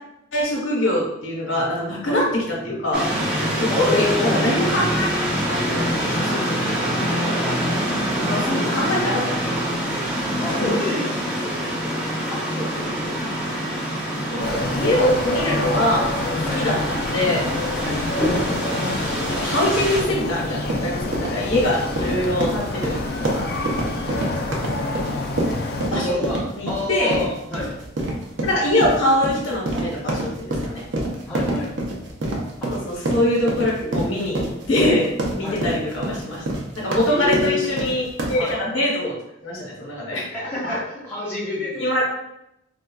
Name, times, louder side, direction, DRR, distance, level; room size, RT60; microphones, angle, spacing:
voice 1, 0.3-3.1 3.6-7.1 8.2-8.5 8.7-9.4 10.5-10.8 12.5-13.3 14.3-17.5 18.8-23.0 23.3-23.5 24.1-24.5 25.8-26.2 26.6-27.2 28.4-30.9 32.7-36.4 36.8-39.2 39.4-40.8 41.8-42.0, left 1 dB, 75° left, -3 dB, 0.9 m, -24 dB
sound 1, 2.9-20.0, equal, 5° right, 0.5 m, -25 dB
voice 2, 3.7-4.4 7.4-7.6 8.4-9.1 10.4-11.1 12.3-12.5 15.7-15.9 16.4-16.6 17.8-18.0 22.0-22.1 25.9-26.4 26.7-27.7 31.3-31.7 32.6-32.7 35.4-35.6 37.1-37.9 38.4-38.6 40.3-40.8 41.1-41.8, left 3 dB, 10° left, -8 dB, 0.8 m, -27 dB
sound 2, 14.4-25.9, left 2 dB, 50° left, 0.3 m, -28 dB
sound 3, 20.5-38.5, right 1 dB, 65° right, 0.5 m, -27 dB
3.7 x 2.3 x 2.2 m, 0.82 s
head